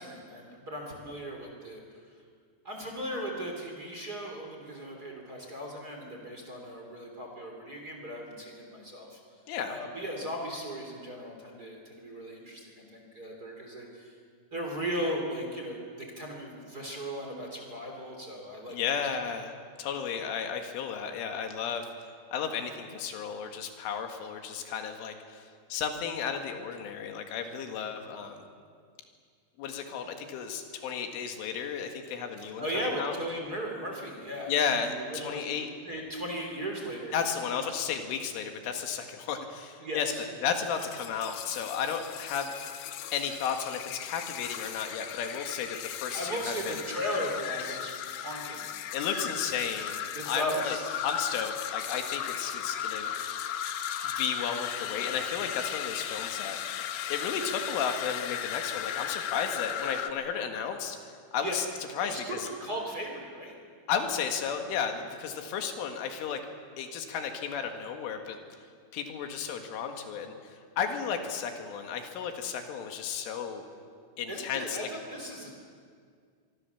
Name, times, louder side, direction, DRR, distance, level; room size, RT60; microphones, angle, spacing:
voice 1, 0.0-1.8 2.6-9.2 9.7-14.2 14.5-18.8 32.6-35.5 35.8-37.6 39.8-40.2 46.1-48.7 50.1-51.0 61.4-61.6 62.0-63.5 74.3-75.5, equal, 25° right, 1 dB, 3.2 m, -37 dB
voice 2, 9.5-9.8 18.7-19.5 19.8-28.4 29.6-33.1 34.5-35.7 37.1-40.1 40.4-46.7 47.6-47.8 48.9-50.8 51.0-53.4 54.0-56.6 57.1-61.0 61.3-61.7 62.0-62.5 63.9-66.4 66.8-68.4 68.9-73.6 74.2-74.8, left 7 dB, 85° left, 5 dB, 4.3 m, -33 dB
sound 1, 40.6-60.1, left 10 dB, 70° left, 2.5 m, -36 dB
24.5 x 24.5 x 7.1 m, 2.1 s
omnidirectional pair, 5.5 m